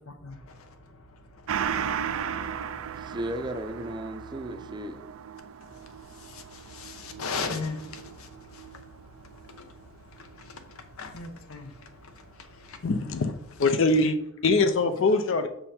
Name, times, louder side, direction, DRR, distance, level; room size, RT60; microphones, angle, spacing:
voice 1, 0.1-3.2 5.6-12.9, left 4 dB, 90° left, 0.9 m, -40 dB
Gong, 1.5-10.4 10.8-10.9, right 8 dB, 75° right, 0.4 m, -36 dB
voice 2, 3.0-5.0, right 1 dB, 20° right, 0.5 m, -35 dB
voice 3, 12.8-14.2 14.4-15.5, left 3 dB, 65° left, 0.5 m, -23 dB
5.6 x 5.2 x 4.3 m
head